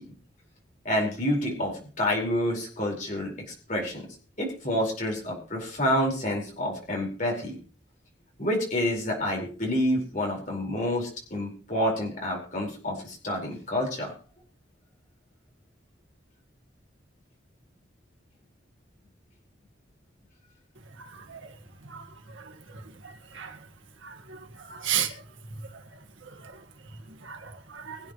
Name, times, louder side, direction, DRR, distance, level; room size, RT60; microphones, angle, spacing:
voice 1, 0.8-3.3 3.7-4.0 4.4-7.5 8.4-14.1, left 1 dB, 40° left, 4.9 m, -28 dB
voice 2, 23.0-23.6 24.0-24.1 24.7-25.1 27.2-28.0, right 10 dB, 85° right, 1.8 m, -32 dB
23.0 x 9.1 x 3.2 m
head